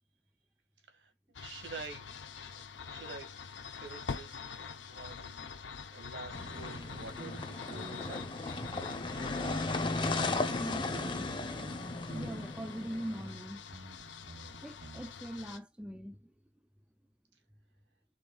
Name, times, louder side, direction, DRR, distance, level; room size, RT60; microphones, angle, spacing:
sound 1, 1.3-15.6, left 5 dB, 80° left, 0.8 m, -45 dB
voice 1, 1.4-2.1 2.6-5.4 5.9-8.6, right 4 dB, 70° right, 1.9 m, -48 dB
sound 2, 6.3-13.3, left 2 dB, 25° left, 0.8 m, -36 dB
sound 3, 6.4-8.2 8.5-9.1 9.4-11.3 11.6-11.8 12.1-15.1, right 2 dB, 45° right, 0.7 m, -51 dB
voice 2, 10.4-11.5 12.1-13.6 14.6-16.3, equal, 5° right, 0.5 m, -42 dB
5.3 x 4.0 x 2.3 m
head